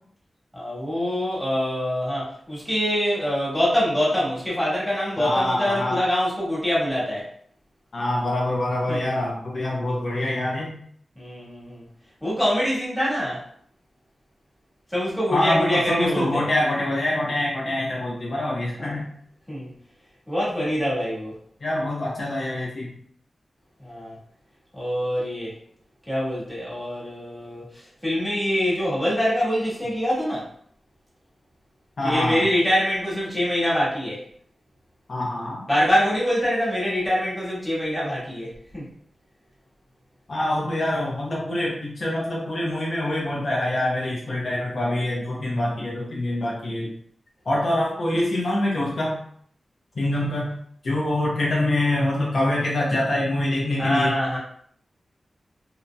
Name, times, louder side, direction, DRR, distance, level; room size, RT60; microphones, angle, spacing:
voice 1, 0.5-7.2 8.9-9.0 11.1-11.8 12.2-13.4 14.9-16.5 18.8-19.0 19.5-19.7 20.3-21.3 23.8-24.2 24.7-25.5 26.1-30.5 32.0-34.2 35.7-38.9 53.8-54.4, equal, ahead, -8 dB, 1.3 m, -24 dB
voice 2, 5.2-6.0 7.9-10.7 15.3-19.1 21.6-22.9 32.0-32.4 35.1-35.6 40.3-46.9 47.5-49.2 49.9-50.5 50.8-54.1, left 1 dB, 60° left, -4 dB, 0.7 m, -25 dB
2.8 x 2.6 x 2.2 m, 0.62 s
wide cardioid pair, 110°, 0 cm